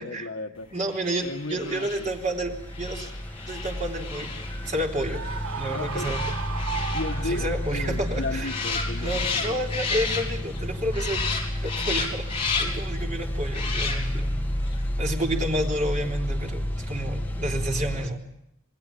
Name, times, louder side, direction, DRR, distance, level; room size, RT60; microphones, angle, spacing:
voice 1, 0.0-0.7 1.2-2.1 5.7-6.2 6.9-9.6, left 2 dB, 60° left, 4 dB, 1.4 m, -35 dB
voice 2, 0.7-3.1 3.5-4.3 4.7-5.2 5.6-6.2 7.2-8.5 9.0-11.2 11.6-14.3 15.0-18.2, right 1 dB, 35° right, 0 dB, 3.4 m, -30 dB
sound 1, 0.9-10.6 10.9-12.9 13.5-14.3 14.7-14.8, left 4 dB, 25° left, 4.3 m, -33 dB
sound 2, 1.6-18.1, equal, 10° left, 1.7 m, -31 dB
Screaming, 5.1-7.8, right 6 dB, 80° right, 0.9 m, -35 dB
28.5 x 20.5 x 8.5 m, 0.81 s
head